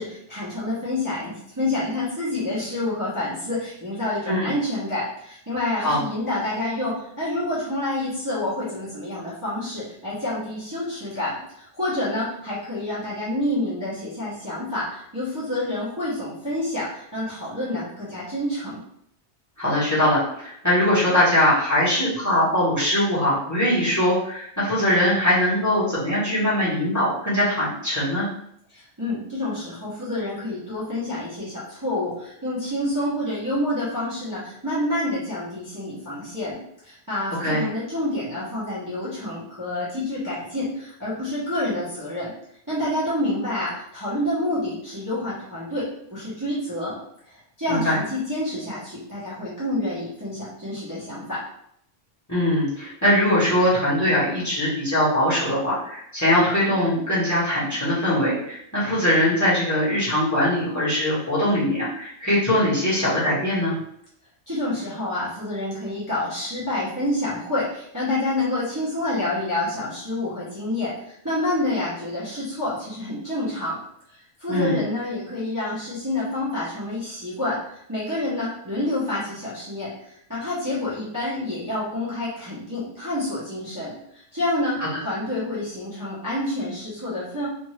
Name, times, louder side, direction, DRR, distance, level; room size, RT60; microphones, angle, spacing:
voice 1, 0.0-18.8 28.7-42.3 42.7-47.0 47.3-51.4 64.5-73.8 74.1-87.5, left 1 dB, 20° right, -11 dB, 0.8 m, -28 dB
voice 2, 19.6-28.3 37.4-37.6 47.7-48.0 52.3-63.8 74.5-74.8, left 1 dB, 15° left, -9 dB, 1.1 m, -21 dB
2.6 x 2.6 x 3.1 m, 0.73 s
omnidirectional pair, 1.2 m